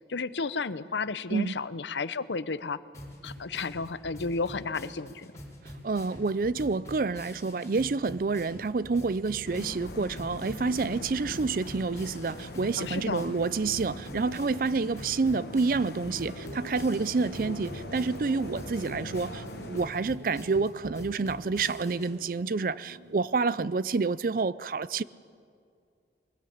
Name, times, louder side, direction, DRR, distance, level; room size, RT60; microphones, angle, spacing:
voice 1, 0.1-2.8 3.2-5.3 12.8-13.3, left 4 dB, 90° left, 0.7 m, -32 dB
sound 1, 2.9-22.1, equal, 15° left, 3.7 m, -46 dB
voice 2, 5.8-25.0, right 4 dB, 50° right, 0.5 m, -28 dB
sound 2, 9.4-19.9, left 1 dB, 65° left, 1.5 m, -42 dB
sound 3, 11.4-24.1, right 1 dB, 85° right, 1.2 m, -48 dB
22.0 x 19.5 x 8.7 m
head